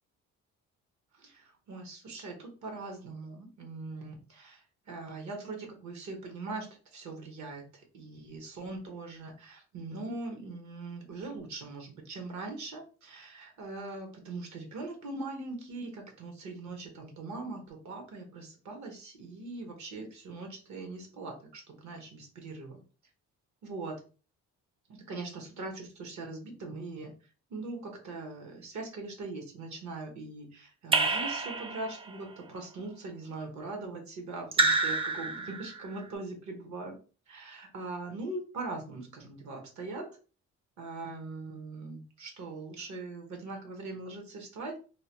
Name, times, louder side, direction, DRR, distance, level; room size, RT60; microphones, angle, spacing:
voice 1, 1.1-22.8 23.6-24.0 24.9-27.1 27.5-36.9 37.3-40.1 40.8-44.8, right 3 dB, 70° right, 3 dB, 1.0 m, -41 dB
Raindrop / Drip, 30.9-32.1 34.5-35.9, right 3 dB, 20° right, 0.4 m, -28 dB
2.9 x 2.1 x 2.9 m, 0.36 s
cardioid pair, 90°, 30 cm